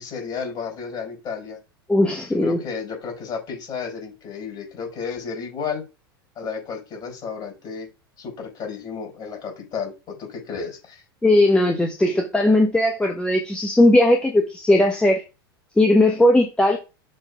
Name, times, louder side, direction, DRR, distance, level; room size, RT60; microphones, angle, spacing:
voice 1, 0.0-1.6 2.4-5.8 6.4-7.9 8.2-11.0, left 6 dB, 35° left, 4.5 m, -32 dB
voice 2, 1.9-2.6 11.2-15.2 15.8-16.8, left 1 dB, 5° left, 1.1 m, -18 dB
6.4 x 3.9 x 4.7 m
figure-of-eight pair, 90°, 13 cm